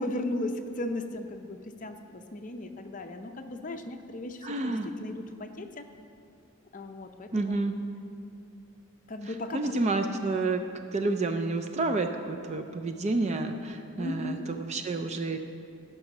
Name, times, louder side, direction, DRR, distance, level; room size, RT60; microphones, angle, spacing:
voice 1, 0.0-5.8 6.7-7.6 9.1-9.7 14.0-14.5, left 1 dB, 35° left, 5 dB, 0.6 m, -36 dB
voice 2, 4.4-4.9 7.3-7.8 9.5-10.6 10.9-15.4, right 3 dB, 30° right, 6 dB, 0.4 m, -29 dB
12.5 x 5.4 x 5.9 m, 2.5 s
head